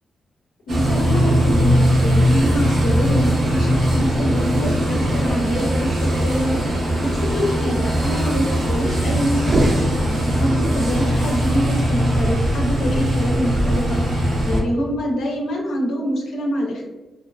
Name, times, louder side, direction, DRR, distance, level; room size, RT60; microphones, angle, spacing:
voice 1, 0.7-16.8, equal, 85° left, -1 dB, 0.5 m, -25 dB
sound 1, 0.7-14.6, equal, 80° right, 0.7 m, -20 dB
sound 2, 9.4-10.7, right 1 dB, 40° right, 0.5 m, -23 dB
2.5 x 2.3 x 2.3 m, 1.1 s
cardioid pair, 70°, 0 cm